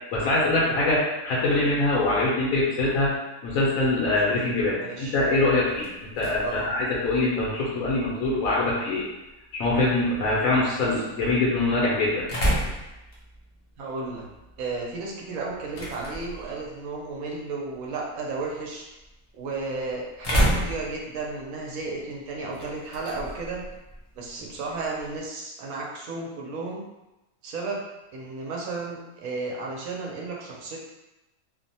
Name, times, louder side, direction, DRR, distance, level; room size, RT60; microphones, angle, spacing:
voice 1, 0.1-3.2 3.4-9.0 9.5-12.3, left 2 dB, 85° left, -6 dB, 1.1 m, -24 dB
voice 2, 4.8-5.2 6.4-6.7 13.8-14.3 14.6-18.9 19.3-23.6 24.1-26.8 27.4-27.8 28.1-30.8, right 3 dB, 80° right, -2 dB, 1.1 m, -33 dB
sound 1, 5.4-25.3, equal, 60° left, 0.3 m, -34 dB
2.8 x 2.1 x 2.6 m, 1.0 s
omnidirectional pair, 1.5 m